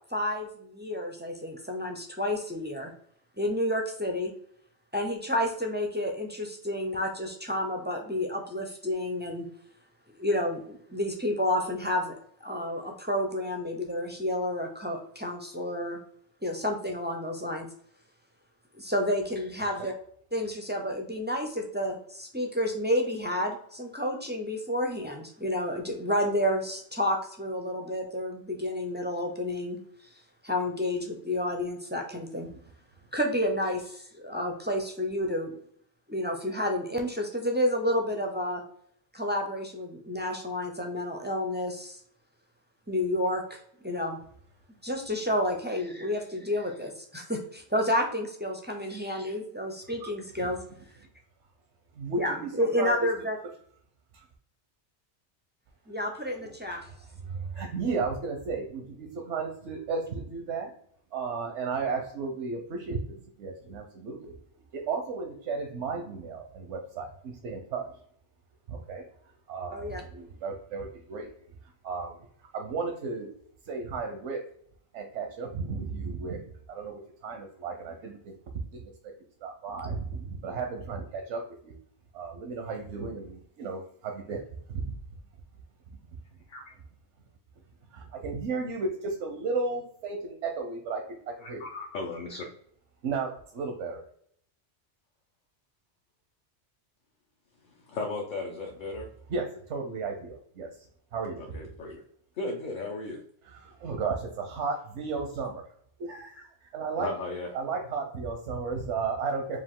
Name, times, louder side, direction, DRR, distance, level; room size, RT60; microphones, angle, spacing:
voice 1, 0.1-2.9 3.4-4.3 4.9-9.5 10.2-12.1 12.4-16.0 16.4-17.7 18.7-19.9 20.3-29.8 30.4-32.5 33.1-35.5 36.1-38.6 39.1-42.0 42.9-44.2 44.8-50.6 52.2-53.4 55.9-56.8 69.7-70.0, left 1 dB, 15° right, 2 dB, 0.3 m, -30 dB
voice 2, 51.9-53.0 54.1-54.3 56.4-60.7 61.1-64.3 64.7-67.9 68.7-71.3 71.6-73.3 73.6-74.4 74.9-78.8 79.4-81.7 82.1-84.4 84.7-85.0 87.9-91.6 93.0-94.0 99.3-100.7 101.1-101.6 103.4-105.6 106.0-107.1 107.5-109.6, right 4 dB, 85° right, 3 dB, 1.0 m, -34 dB
voice 3, 91.4-92.4 97.7-99.1 101.4-102.0 102.4-103.2 107.0-107.5, left 3 dB, 50° left, 0 dB, 0.7 m, -36 dB
5.0 x 2.4 x 3.6 m, 0.64 s
omnidirectional pair, 1.2 m